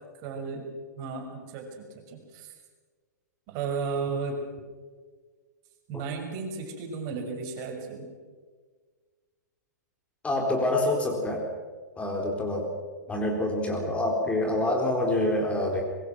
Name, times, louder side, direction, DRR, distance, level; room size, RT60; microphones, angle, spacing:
voice 1, 0.2-0.7 1.0-2.5 3.5-4.4 5.9-8.1, right 5 dB, 40° right, 2 dB, 6.2 m, -34 dB
voice 2, 10.2-11.5 12.0-12.7 13.1-15.8, left 1 dB, 10° left, 1 dB, 4.0 m, -26 dB
24.5 x 22.5 x 6.2 m, 1.5 s
hypercardioid pair, 115°, 10 cm